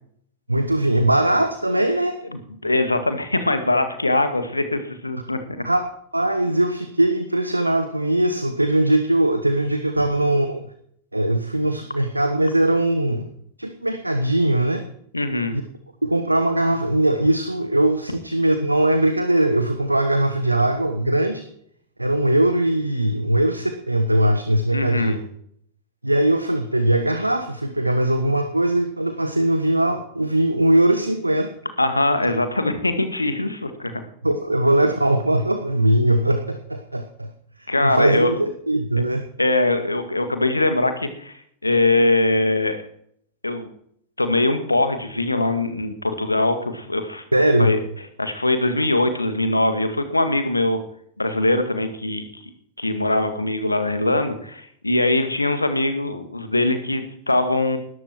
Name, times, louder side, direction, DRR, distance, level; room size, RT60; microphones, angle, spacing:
voice 1, 0.5-2.1 5.6-5.8 6.1-10.6 11.1-13.3 13.6-14.8 15.5-15.6 16.0-21.4 22.0-25.2 26.0-31.5 34.2-37.3 37.8-39.2 47.3-47.7, right 1 dB, 85° right, 8 dB, 1.3 m, -20 dB
voice 2, 2.3-5.6 15.1-15.5 24.7-25.2 31.8-34.0 37.7-38.3 39.0-39.1 39.4-42.8 43.4-43.7 44.2-47.2 47.6-47.8 48.2-50.8 51.2-52.4 52.8-57.8, left 2 dB, 85° left, 8 dB, 2.0 m, -22 dB
19.5 x 13.5 x 4.5 m, 0.67 s
figure-of-eight pair, 90°, 0 cm